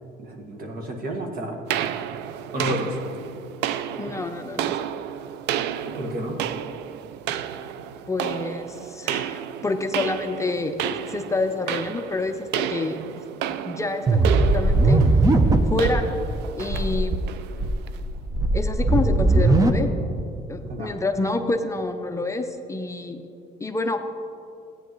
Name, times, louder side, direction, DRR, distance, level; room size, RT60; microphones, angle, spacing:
voice 1, 0.2-1.6 2.5-3.0 4.1-4.2 5.8-6.4 20.6-20.9, equal, 60° right, 1 dB, 1.7 m, -31 dB
sound 1, 1.7-18.1, right 10 dB, 85° right, 0.4 m, -31 dB
voice 2, 4.0-4.8 8.1-10.7 11.1-13.0 13.6-15.0 15.7-16.1 16.6-17.2 18.5-19.9 20.5-23.2 23.6-24.0, left 2 dB, 15° left, 6 dB, 0.5 m, -27 dB
sound 2, 14.1-15.9 16.3-16.4 16.7-17.2 17.6-19.7, right 2 dB, 20° right, 0.7 m, -19 dB
15.0 x 9.2 x 3.1 m, 2.7 s
cardioid pair, 110°, 17 cm